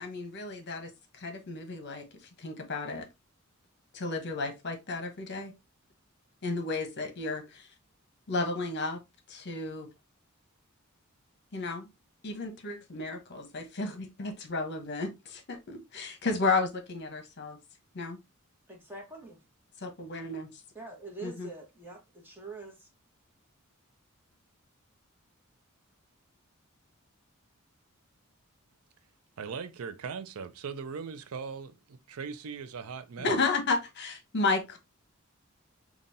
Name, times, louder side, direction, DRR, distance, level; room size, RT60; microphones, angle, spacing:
voice 1, 0.0-2.1 2.4-3.1 3.9-5.5 6.4-7.7 8.3-9.0 9.3-9.9 11.5-11.9 12.2-17.6 17.9-18.2 19.8-20.6 21.2-21.5 33.2-34.8, left 3 dB, 50° left, 0.9 m, -33 dB
voice 2, 18.7-19.4 20.7-22.9, right 3 dB, 10° right, 1.2 m, -45 dB
voice 3, 29.4-33.4, right 6 dB, 75° right, 0.4 m, -39 dB
5.2 x 2.4 x 2.6 m
head